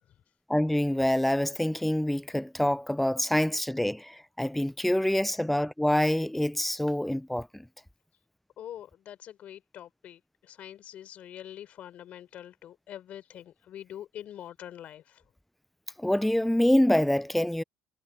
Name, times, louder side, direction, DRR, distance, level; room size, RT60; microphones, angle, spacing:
voice 1, 0.5-7.6 16.0-17.6, left 1 dB, 5° left, 0.5 m, -26 dB
voice 2, 8.6-15.2, left 11 dB, 55° left, 3.8 m, -44 dB
supercardioid pair, 80°, 3 cm